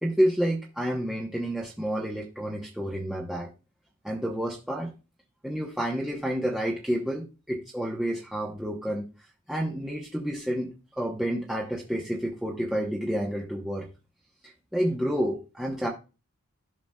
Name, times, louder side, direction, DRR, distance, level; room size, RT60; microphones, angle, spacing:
voice 1, 0.0-3.5 4.0-4.9 5.4-9.1 9.5-13.9 14.7-15.9, equal, ahead, -3 dB, 1.0 m, -29 dB
14.0 x 6.0 x 2.3 m, 0.30 s
head